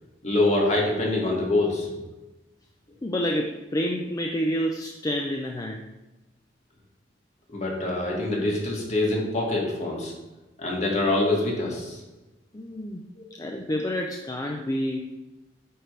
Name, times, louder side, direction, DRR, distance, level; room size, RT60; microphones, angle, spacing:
voice 1, 0.2-1.9 7.5-10.1 10.6-12.0, left 2 dB, 40° left, -3 dB, 1.9 m, -25 dB
voice 2, 3.0-5.8 12.5-13.0 13.4-15.2, equal, 20° left, 2 dB, 0.5 m, -28 dB
8.8 x 5.1 x 3.2 m, 1.1 s
head